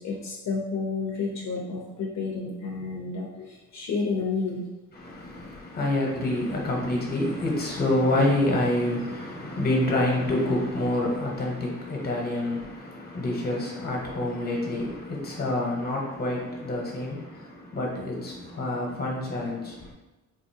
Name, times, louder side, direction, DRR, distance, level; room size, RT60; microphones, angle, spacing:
voice 1, 0.0-4.7, left 4 dB, 65° left, 0.5 m, -30 dB
voice 2, 4.9-19.9, left 1 dB, 30° left, 0.9 m, -27 dB
3.8 x 2.5 x 2.6 m
wide cardioid pair, 130°, 30 cm